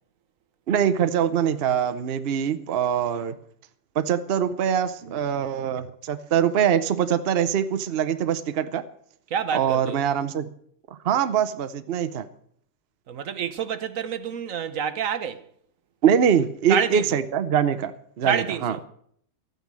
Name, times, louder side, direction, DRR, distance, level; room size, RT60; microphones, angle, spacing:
voice 1, 0.7-3.3 3.9-8.8 9.5-10.5 11.0-12.3 16.0-17.9 18.2-18.8, right 8 dB, 50° right, 0.9 m, -23 dB
voice 2, 9.3-10.0 13.1-15.4 16.7-17.2 18.2-18.8, right 7 dB, 70° right, 1.2 m, -28 dB
13.5 x 9.3 x 7.4 m
omnidirectional pair, 1.5 m